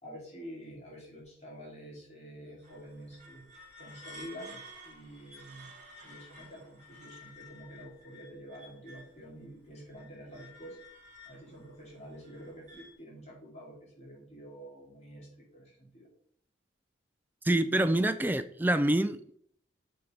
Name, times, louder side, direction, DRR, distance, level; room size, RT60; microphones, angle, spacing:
voice 1, 0.0-3.4 3.8-5.7 6.0-10.8 11.2-16.1, equal, 35° left, -4 dB, 2.6 m, -48 dB
sound 1, 2.6-9.2 9.6-12.9, left 1 dB, 45° right, 2.3 m, -52 dB
voice 2, 17.4-19.3, right 1 dB, 10° right, 11 dB, 0.3 m, -26 dB
6.4 x 5.5 x 4.4 m, 0.64 s
head